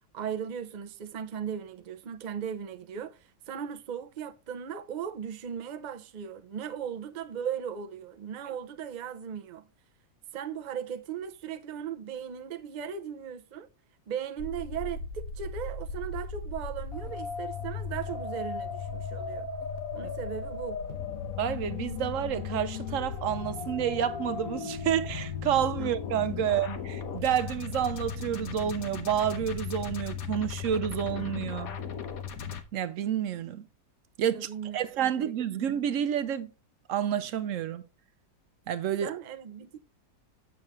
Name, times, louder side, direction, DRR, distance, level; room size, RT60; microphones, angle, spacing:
voice 1, 0.1-9.7 10.3-13.7 14.1-19.5 19.9-20.8 25.8-25.9 34.3-35.1 35.5-35.7 39.0-39.8, right 8 dB, 85° right, 0.4 m, -37 dB
sound 1, 14.4-32.6, left 5 dB, 65° left, 1.3 m, -36 dB
voice 2, 21.4-31.7 32.7-33.6 34.2-36.5 36.9-37.8 38.7-39.1, right 9 dB, 65° right, 0.8 m, -29 dB
7.8 x 7.1 x 3.1 m
omnidirectional pair, 1.7 m